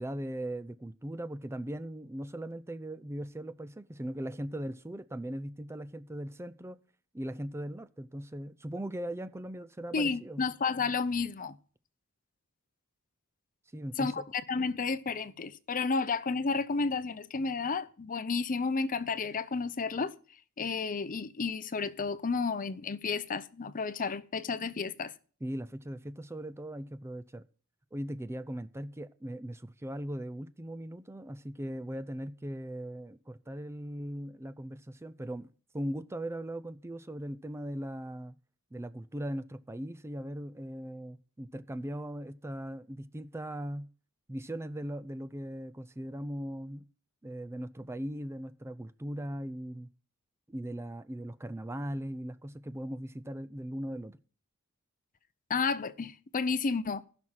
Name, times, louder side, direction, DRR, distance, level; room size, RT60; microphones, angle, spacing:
voice 1, 0.0-6.8 7.1-10.4 13.7-14.2 25.4-27.4 27.9-35.5 35.7-38.4 38.7-43.9 44.3-46.8 47.2-49.9 50.5-54.2, right 1 dB, 10° right, 0.5 m, -39 dB
voice 2, 9.9-11.6 14.0-20.1 20.6-25.1 55.5-57.0, left 4 dB, 40° left, 0.6 m, -32 dB
15.5 x 6.2 x 5.6 m
head